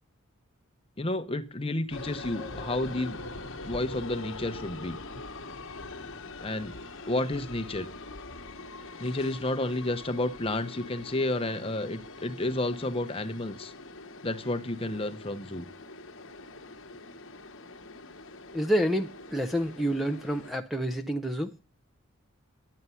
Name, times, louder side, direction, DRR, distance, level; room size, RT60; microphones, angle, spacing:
voice 1, 1.0-3.2 3.7-5.0 6.4-6.7 7.1-7.9 9.0-13.7 14.2-15.7, left 2 dB, 25° left, 0.9 m, -31 dB
sound 1, 1.9-20.5, left 2 dB, 65° left, 1.2 m, -43 dB
voice 2, 18.5-21.5, equal, ahead, 0.5 m, -28 dB
11.0 x 9.5 x 5.7 m
head